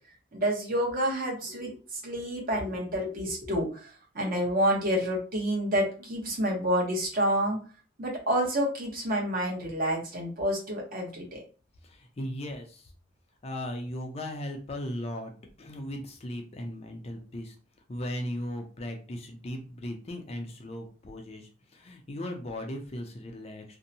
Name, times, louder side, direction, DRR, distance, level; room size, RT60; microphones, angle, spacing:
voice 1, 0.3-7.6 8.0-11.4, equal, 50° right, -1 dB, 0.9 m, -29 dB
voice 2, 11.8-12.8 13.4-15.3 15.6-17.5 17.9-23.6, left 1 dB, 35° left, 3 dB, 0.5 m, -37 dB
2.7 x 2.1 x 2.6 m, 0.37 s
head